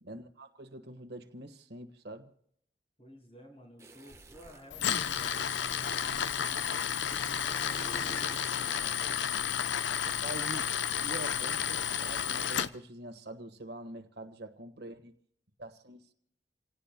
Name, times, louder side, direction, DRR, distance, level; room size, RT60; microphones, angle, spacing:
voice 1, 0.0-2.3 10.0-10.7 11.0-15.1 15.6-16.1, right 1 dB, 65° right, 1.4 m, -45 dB
voice 2, 3.0-5.4 5.8-9.0, equal, 35° left, 5.5 m, -54 dB
sound 1, 3.8-4.7 5.7-6.5 7.6-9.0, right 2 dB, 15° right, 1.2 m, -49 dB
Tools, 4.7-12.7, left 8 dB, 85° left, 0.7 m, -32 dB
29.0 x 17.5 x 2.2 m
head